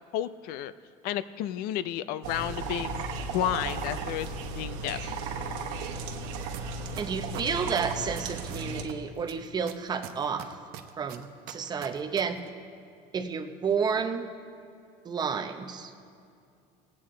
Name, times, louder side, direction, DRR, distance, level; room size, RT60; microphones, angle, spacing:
voice 1, 0.1-0.7 1.0-3.1 3.3-5.1, left 12 dB, 65° left, 15 dB, 0.4 m, -32 dB
sound 1, 2.2-8.8, right 3 dB, 85° right, 1.1 m, -35 dB
sound 2, 6.5-6.6 7.0-8.9 9.3-12.2 12.5-12.6, right 13 dB, 65° right, 0.7 m, -41 dB
voice 2, 7.0-10.6 11.0-12.4 13.1-14.3 15.0-15.9, right 6 dB, 25° right, 6 dB, 0.7 m, -31 dB
18.0 x 8.4 x 3.8 m, 2.4 s
cardioid pair, 140°, 16 cm